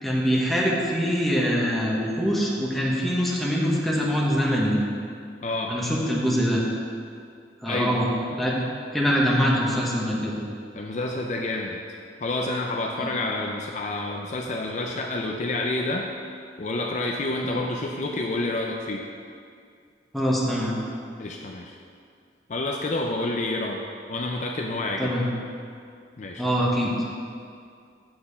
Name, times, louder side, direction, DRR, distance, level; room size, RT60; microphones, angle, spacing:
voice 1, 0.0-4.8 5.7-6.6 7.6-8.5 8.9-10.3 13.0-13.1 20.1-20.7 25.0-25.3 26.4-26.9, equal, ahead, -5 dB, 1.2 m, -24 dB
voice 2, 5.4-5.7 7.7-8.0 10.7-11.8 12.2-16.1 16.6-19.0 21.2-21.8 22.5-23.8 24.1-25.1 26.2-26.4, left 2 dB, 40° left, 1 dB, 0.5 m, -28 dB
7.6 x 4.4 x 6.8 m, 2.3 s
head